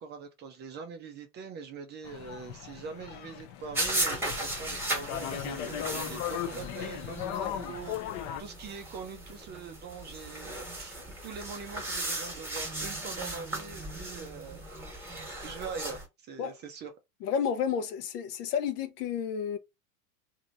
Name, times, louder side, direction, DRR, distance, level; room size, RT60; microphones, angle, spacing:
voice 1, 0.0-15.0 15.4-16.9, right 5 dB, 25° right, 0.4 m, -43 dB
sound 1, 2.0-8.4, left 11 dB, 40° left, 0.4 m, -37 dB
sound 2, 3.7-16.0, right 1 dB, 5° right, 1.2 m, -37 dB
voice 2, 17.2-19.6, left 7 dB, 75° left, 0.8 m, -31 dB
3.0 x 2.6 x 2.5 m
hypercardioid pair, 110°, 47 cm